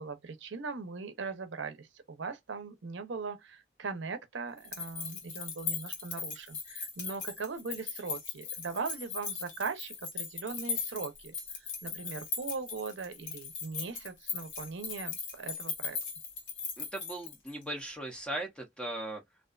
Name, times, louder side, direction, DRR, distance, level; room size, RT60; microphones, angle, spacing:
voice 1, 0.0-11.3 11.8-16.0, right 4 dB, 65° right, 0.6 m, -39 dB
sound 1, 4.6-17.6, left 5 dB, 70° left, 1.1 m, -39 dB
voice 2, 16.8-19.2, right 1 dB, 5° left, 0.5 m, -38 dB
2.4 x 2.2 x 2.3 m
head